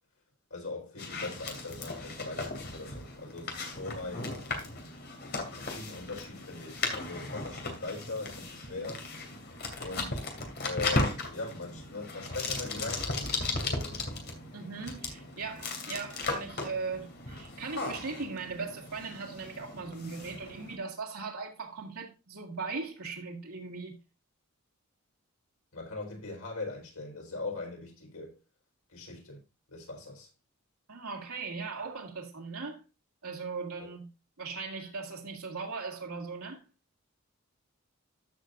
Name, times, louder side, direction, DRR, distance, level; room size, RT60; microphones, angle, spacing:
voice 1, 0.5-4.3 5.2-9.1 9.8-10.3 10.6-13.3 13.6-14.2 25.7-28.4 28.9-29.4 29.7-30.3, left 3 dB, 90° left, 4.4 m, -40 dB
sound 1, 1.0-20.8, left 2 dB, 50° left, 2.6 m, -37 dB
voice 2, 14.5-24.0 30.9-32.8 33.2-34.1 34.4-36.6, right 4 dB, 90° right, 2.3 m, -39 dB
14.0 x 6.2 x 2.5 m
head